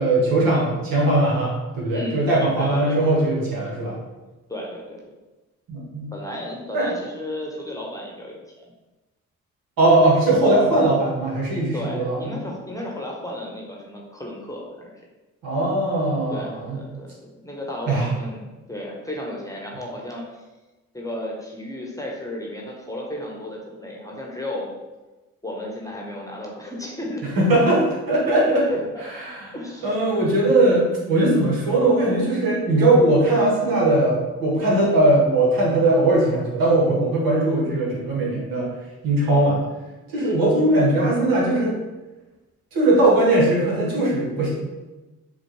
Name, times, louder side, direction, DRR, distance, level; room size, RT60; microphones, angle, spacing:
voice 1, 0.0-4.0 5.7-6.1 6.7-6.9 9.8-12.3 15.4-16.8 17.9-18.1 27.3-28.7 29.2-29.5 29.8-38.7 39.0-39.6 40.1-41.7 42.7-44.5, right 2 dB, 70° right, -5 dB, 1.4 m, -19 dB
voice 2, 1.9-3.0 4.5-5.0 6.1-8.4 10.4-10.7 11.7-14.9 16.3-20.3 20.9-24.7 25.4-27.2 28.7-28.8 29.4-29.9 39.2-39.5 40.1-40.4, left 1 dB, 10° left, -2 dB, 1.0 m, -33 dB
4.2 x 2.5 x 3.1 m, 1.1 s
supercardioid pair, 45°, 36 cm